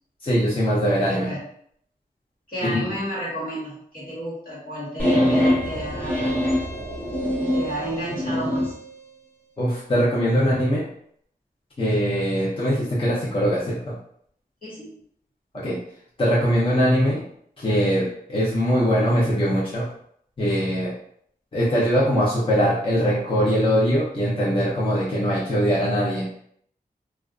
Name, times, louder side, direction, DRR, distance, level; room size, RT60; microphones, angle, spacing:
voice 1, 0.2-1.3 2.6-2.9 9.6-10.9 11.8-14.0 15.6-15.8 16.2-17.2 17.6-19.9 20.4-20.9 21.5-26.3, equal, 35° left, -8 dB, 0.7 m, -21 dB
voice 2, 1.1-1.4 2.5-6.3 7.5-8.7 14.6-15.0, equal, 65° left, -7 dB, 1.3 m, -32 dB
sound 1, 5.0-8.7, equal, 10° left, 1.0 m, -23 dB
2.4 x 2.2 x 2.4 m, 0.67 s
wide cardioid pair, 75°, 16 cm